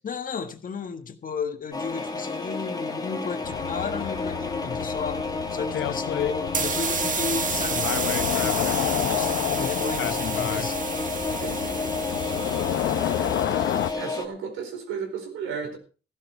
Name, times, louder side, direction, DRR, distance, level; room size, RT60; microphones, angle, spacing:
voice 1, 0.0-7.9 9.0-10.8, left 6 dB, 45° left, 1.7 m, -33 dB
sound 1, 1.7-14.3, left 3 dB, 20° left, 1.8 m, -31 dB
sound 2, 3.4-13.9, left 12 dB, 75° left, 0.8 m, -29 dB
sound 3, 6.5-13.9, right 5 dB, 40° right, 1.5 m, -31 dB
voice 2, 11.3-11.8 12.9-13.2 13.9-15.8, right 6 dB, 90° right, 4.4 m, -34 dB
15.0 x 12.0 x 4.6 m
cardioid pair, 90°, 20 cm